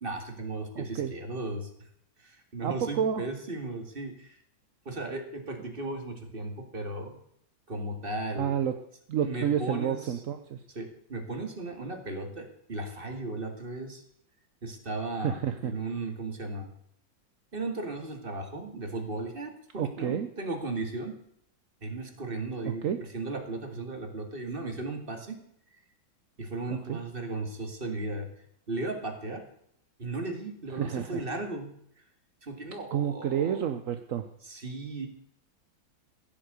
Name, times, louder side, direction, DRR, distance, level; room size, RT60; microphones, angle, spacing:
voice 1, 0.0-1.7 2.2-4.4 4.9-7.2 7.7-8.5 9.2-10.2 10.7-14.0 14.6-16.7 17.5-21.2 21.8-22.8 23.1-25.4 26.4-28.3 28.7-29.4 30.0-31.7 32.4-33.7 34.4-35.1, right 2 dB, 30° right, 5 dB, 2.2 m, -36 dB
voice 2, 0.8-1.1 2.6-3.2 8.4-8.7 9.1-10.6 15.2-15.7 19.8-20.3 22.8-23.0 26.7-27.0 30.7-31.2 32.9-34.2, right 8 dB, 55° right, 8 dB, 1.0 m, -30 dB
15.5 x 7.7 x 8.1 m, 0.69 s
omnidirectional pair, 2.1 m